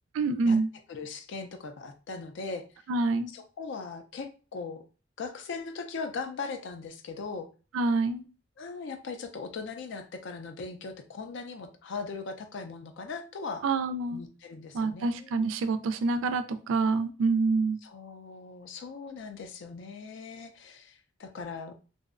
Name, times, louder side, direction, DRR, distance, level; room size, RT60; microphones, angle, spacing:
voice 1, 0.1-0.7 2.9-3.3 7.7-8.2 13.6-14.2 14.7-17.8, right 3 dB, 85° right, 9 dB, 0.3 m, -27 dB
voice 2, 0.9-2.6 3.3-4.8 5.2-7.5 8.6-13.7 14.1-15.3 17.8-21.7, left 4 dB, 65° left, 7 dB, 0.4 m, -39 dB
2.5 x 2.0 x 2.4 m, 0.35 s
head